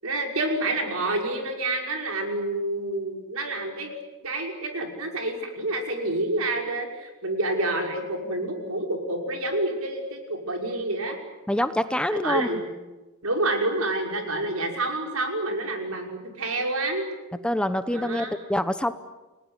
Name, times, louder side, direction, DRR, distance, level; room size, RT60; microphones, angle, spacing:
voice 1, 0.0-3.9 4.2-11.2 12.1-12.6 13.2-17.1 17.9-18.3, right 2 dB, 75° right, 3 dB, 5.8 m, -28 dB
voice 2, 11.5-12.5 17.4-18.9, left 1 dB, 5° left, 11 dB, 0.9 m, -25 dB
30.0 x 19.5 x 9.9 m, 1.1 s
head